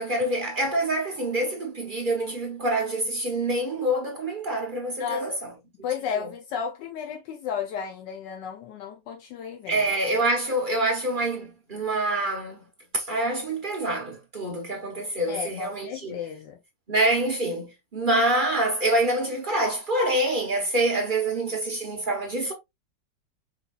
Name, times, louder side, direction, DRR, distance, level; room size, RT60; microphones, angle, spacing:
voice 1, 0.0-5.5 6.2-6.3 9.7-12.6 12.9-16.2 16.9-22.5, right 1 dB, 50° right, 0.6 m, -26 dB
voice 2, 5.8-9.9 15.3-16.6, left 7 dB, 80° left, 1.3 m, -33 dB
4.8 x 3.3 x 2.3 m
omnidirectional pair, 1.9 m